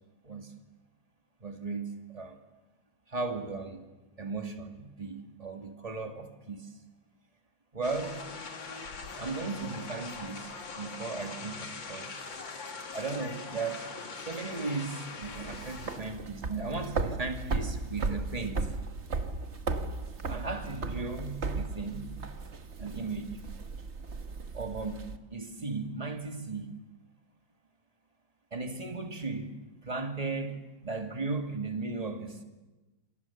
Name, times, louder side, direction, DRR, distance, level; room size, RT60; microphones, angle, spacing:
voice 1, 1.4-2.4 3.1-3.8 4.2-6.7 7.7-8.3 9.2-10.5 10.8-12.2 12.9-13.9 14.2-18.7 20.3-22.1 22.8-23.4 24.5-26.8 28.5-29.5 29.8-32.4, right 3 dB, 20° right, 5 dB, 2.3 m, -36 dB
sound 1, 7.8-16.0, left 4 dB, 65° left, 3.1 m, -42 dB
sound 2, 15.2-25.2, right 3 dB, 35° right, 1.5 m, -36 dB
28.0 x 27.5 x 7.3 m, 1.1 s
omnidirectional pair, 2.2 m